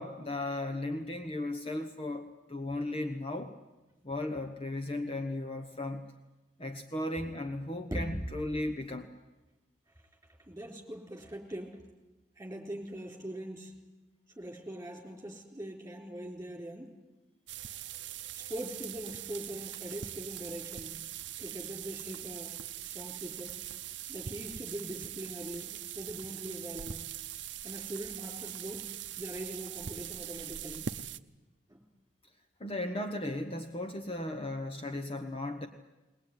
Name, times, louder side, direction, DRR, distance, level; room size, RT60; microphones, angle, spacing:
voice 1, 0.0-3.5 4.0-6.1 6.6-9.1 32.6-35.7, left 1 dB, 30° left, 6 dB, 1.1 m, -36 dB
voice 2, 10.5-11.8 12.4-13.8 14.4-16.9 18.3-20.9 21.4-22.5 22.9-23.6 24.1-27.0 27.6-28.8 29.2-30.9 31.7-31.8, right 1 dB, 15° right, 1 dB, 4.3 m, -42 dB
sound 1, 17.5-31.2, right 10 dB, 70° right, 0.7 m, -42 dB
21.0 x 20.0 x 9.8 m, 1.1 s
head